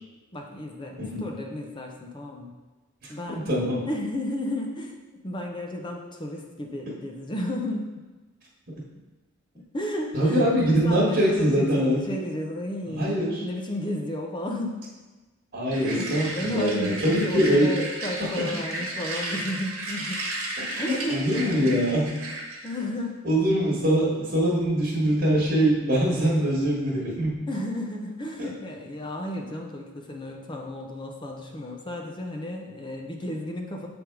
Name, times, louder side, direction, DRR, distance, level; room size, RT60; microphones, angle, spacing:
voice 1, 0.3-2.6 3.1-3.5 3.9-7.9 9.7-14.8 15.7-20.2 20.8-21.6 22.6-23.2 27.5-33.9, left 1 dB, 20° left, 1 dB, 0.6 m, -33 dB
voice 2, 3.5-3.9 10.1-12.0 13.0-13.4 15.5-17.7 18.4-18.5 20.6-22.1 23.2-27.4, right 1 dB, 45° right, -4 dB, 1.4 m, -23 dB
sound 1, 15.7-22.8, right 1 dB, 80° right, 1.2 m, -34 dB
7.4 x 3.5 x 4.6 m, 1.2 s
head